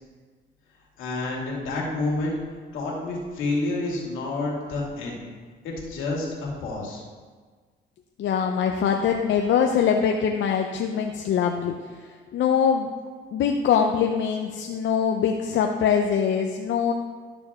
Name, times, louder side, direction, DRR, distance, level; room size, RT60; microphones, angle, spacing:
voice 1, 1.0-2.4 2.7-5.2 5.6-7.0, left 2 dB, 90° left, -3 dB, 2.4 m, -29 dB
voice 2, 8.2-11.7 12.3-12.9 13.3-16.9, left 7 dB, 70° left, 3 dB, 0.7 m, -23 dB
12.5 x 6.9 x 3.6 m, 1.5 s
cardioid pair, 90°, 20 cm